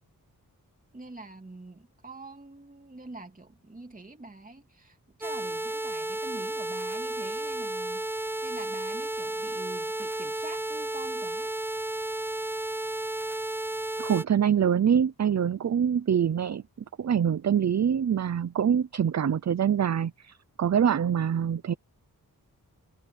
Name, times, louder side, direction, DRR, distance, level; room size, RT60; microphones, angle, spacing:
voice 1, 0.9-11.5, right 2 dB, 25° right, 2.9 m, -45 dB
sound 1, 5.2-14.2, right 2 dB, 5° right, 0.4 m, -33 dB
voice 2, 14.0-16.6 17.0-21.7, right 8 dB, 50° right, 0.6 m, -25 dB
wide cardioid pair, 145°, 35 cm